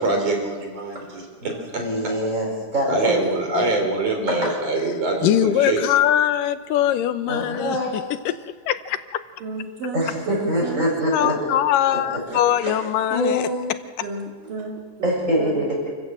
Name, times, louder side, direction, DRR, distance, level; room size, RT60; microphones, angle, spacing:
voice 1, 0.0-1.8 2.9-5.8, right 2 dB, 50° right, 2 dB, 5.2 m, -24 dB
voice 2, 1.4-3.1 4.3-4.5 7.3-8.1 9.9-11.6 11.9-12.0 12.3-12.7 13.1-13.7 15.0-15.9, equal, 20° right, -2 dB, 7.6 m, -25 dB
voice 3, 3.0-3.8 9.4-10.9 14.0-15.6, right 3 dB, 85° right, 0 dB, 4.0 m, -32 dB
voice 4, 5.2-7.8 8.3-8.4 8.7-9.0 11.1-13.5 14.0-14.1, left 11 dB, 85° left, 12 dB, 2.6 m, -21 dB
28.5 x 15.5 x 7.7 m, 1.5 s
omnidirectional pair, 3.8 m